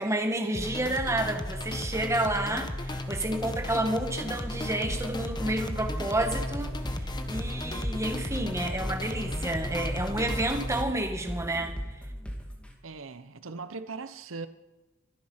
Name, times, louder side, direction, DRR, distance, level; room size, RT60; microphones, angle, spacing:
voice 1, 0.0-7.0 7.3-11.7, right 1 dB, 15° right, 1.9 m, -30 dB
sound 1, 0.5-10.8, left 1 dB, 20° left, 1.1 m, -35 dB
sound 2, 4.9-12.7, equal, 5° left, 2.4 m, -37 dB
voice 2, 12.8-14.5, right 4 dB, 80° right, 0.8 m, -39 dB
24.5 x 9.5 x 5.8 m
head